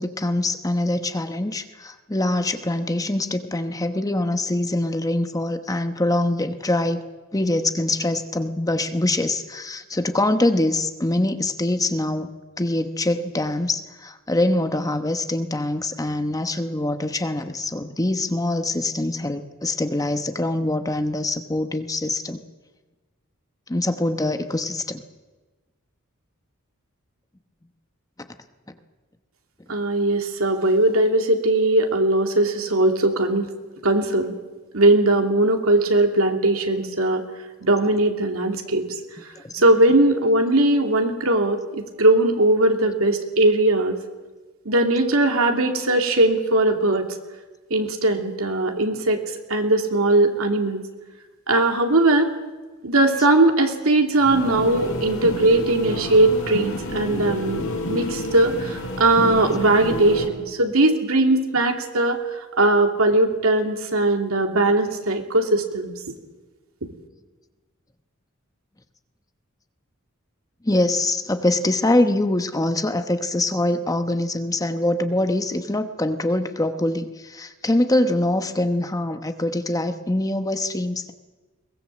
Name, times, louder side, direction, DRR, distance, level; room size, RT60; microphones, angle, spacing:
voice 1, 0.0-7.0 7.3-22.4 23.7-25.0 39.4-39.5 70.6-81.1, left 1 dB, 15° left, 8 dB, 1.0 m, -24 dB
voice 2, 29.7-33.5 33.8-34.3 34.7-37.2 37.6-38.8 39.5-44.0 44.6-47.1 47.7-49.2 49.5-50.8 51.5-52.3 52.8-57.6 57.9-62.2 62.6-66.0, right 2 dB, 75° right, 4 dB, 2.7 m, -19 dB
sound 1, 54.2-60.3, left 1 dB, 70° left, 5.0 m, -30 dB
22.5 x 20.0 x 7.5 m, 1.2 s
head